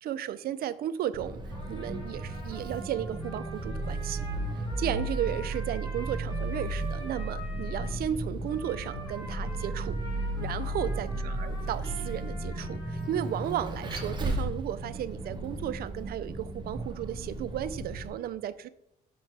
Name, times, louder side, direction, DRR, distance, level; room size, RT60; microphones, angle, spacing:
voice 1, 0.0-1.4 1.7-4.3 4.8-10.0 10.4-18.7, right 11 dB, 60° right, 15 dB, 0.4 m, -34 dB
Vehicle, 1.1-18.1, right 1 dB, 25° right, 1.2 m, -34 dB
Trumpet, 1.5-8.0 8.4-13.8, right 1 dB, 25° left, 2.5 m, -46 dB
6.7 x 4.1 x 4.6 m, 0.80 s
cardioid pair, 100°, 18 cm